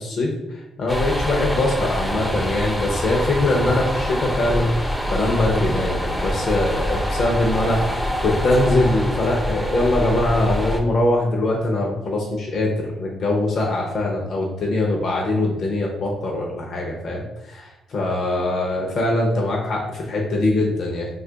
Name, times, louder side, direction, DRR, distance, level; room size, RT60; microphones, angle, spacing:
voice 1, 0.0-21.1, left 2 dB, 55° left, -1 dB, 0.6 m, -22 dB
sound 1, 0.9-10.8, equal, 5° left, 0.4 m, -25 dB
2.7 x 2.4 x 3.8 m, 0.98 s
cardioid pair, 90°, 0 cm